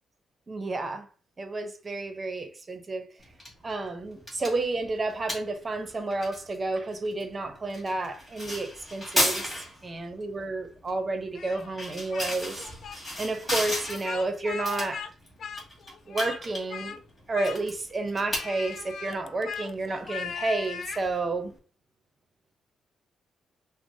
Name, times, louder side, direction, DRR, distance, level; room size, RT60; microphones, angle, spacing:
voice 1, 0.5-1.1 1.4-3.1 3.6-9.5 9.8-12.7 13.2-15.1 16.1-17.0 17.3-21.5, right 2 dB, 25° right, 0.6 m, -31 dB
sound 1, 3.2-21.6, left 1 dB, 15° left, 2.0 m, -36 dB
Speech, 11.3-12.3 12.6-13.0 13.8-15.1 15.4-16.4 16.7-17.0 17.3-17.9 18.3-21.1, left 7 dB, 50° left, 0.3 m, -39 dB
6.0 x 2.0 x 2.7 m
cardioid pair, 160°, 0 cm